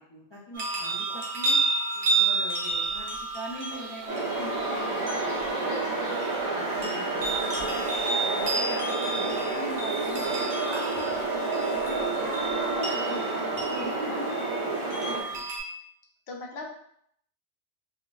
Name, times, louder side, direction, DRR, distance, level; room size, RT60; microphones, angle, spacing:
voice 1, 0.0-1.6 2.2-6.2 6.4-7.9 8.2-12.6 12.9-15.5, equal, 40° left, -5 dB, 0.4 m, -42 dB
sound 1, 0.5-15.6, right 3 dB, 50° right, 0.8 m, -31 dB
sound 2, 3.5-11.0, right 3 dB, 80° right, 0.8 m, -46 dB
sound 3, 4.1-15.2, right 3 dB, 30° right, 0.4 m, -29 dB
voice 2, 12.8-13.2 13.6-13.9 14.7-15.1 16.3-16.7, left 2 dB, 70° left, -1 dB, 0.9 m, -42 dB
2.5 x 2.4 x 3.1 m, 0.70 s
omnidirectional pair, 1.2 m